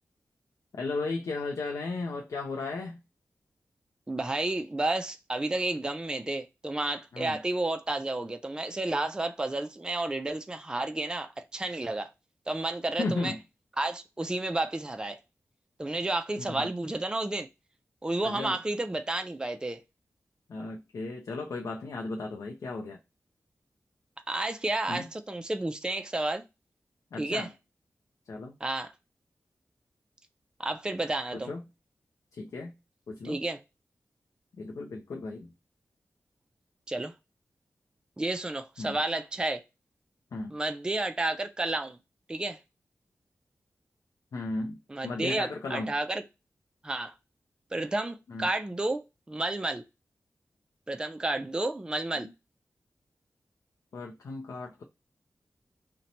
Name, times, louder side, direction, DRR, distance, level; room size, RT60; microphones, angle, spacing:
voice 1, 0.7-3.0 7.1-7.4 13.0-13.4 16.4-16.7 18.2-18.6 20.5-23.0 24.9-25.1 27.1-27.5 28.3-28.5 31.3-31.6 32.3-32.7 33.1-33.4 34.6-35.5 38.8-39.0 40.3-40.6 44.3-45.9 48.3-48.5 52.2-52.3 53.9-54.8, left 3 dB, 80° left, 0.5 m, -35 dB
voice 2, 4.1-12.1 12.5-13.3 13.8-15.2 15.8-17.5 18.0-19.8 24.3-26.4 27.2-27.5 28.6-28.9 30.6-31.5 33.2-33.6 36.9-37.1 38.2-39.6 40.5-42.0 42.3-42.6 44.9-46.2 46.8-47.1 47.7-49.8 50.9-52.3, right 2 dB, 15° right, 0.4 m, -31 dB
2.8 x 2.1 x 3.9 m
wide cardioid pair, 70°, 6 cm